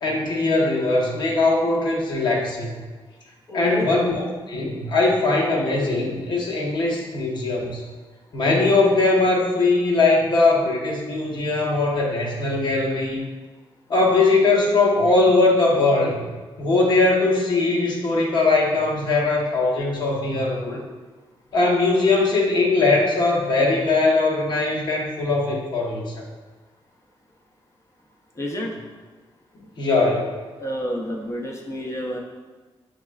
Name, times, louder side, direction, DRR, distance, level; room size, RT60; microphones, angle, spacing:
voice 1, 0.0-2.8 3.5-7.9 8.3-13.2 13.9-16.3 16.6-20.8 21.5-26.2 29.8-30.3, left 3 dB, 50° left, -3 dB, 0.8 m, -20 dB
voice 2, 3.5-3.9 28.4-28.7 30.6-32.2, equal, 30° left, 0 dB, 0.6 m, -29 dB
6.0 x 3.2 x 2.3 m, 1.3 s
wide cardioid pair, 170°, 10 cm